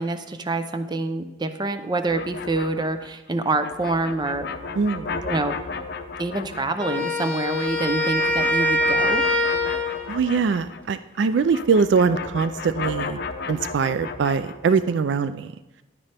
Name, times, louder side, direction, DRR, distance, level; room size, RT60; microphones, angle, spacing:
voice 1, 0.0-4.5 5.2-5.6 6.2-9.2, right 2 dB, 25° right, 9 dB, 0.6 m, -26 dB
sound 1, 2.1-11.0 11.3-14.9, left 4 dB, 60° left, 0.7 m, -34 dB
voice 2, 4.8-5.1 10.1-13.2 13.5-15.5, right 5 dB, 65° right, 13 dB, 0.3 m, -22 dB
Wind instrument woodwind instrument, 6.8-10.1, left 1 dB, 10° left, 1.4 m, -23 dB
10.5 x 9.7 x 3.4 m, 0.99 s
head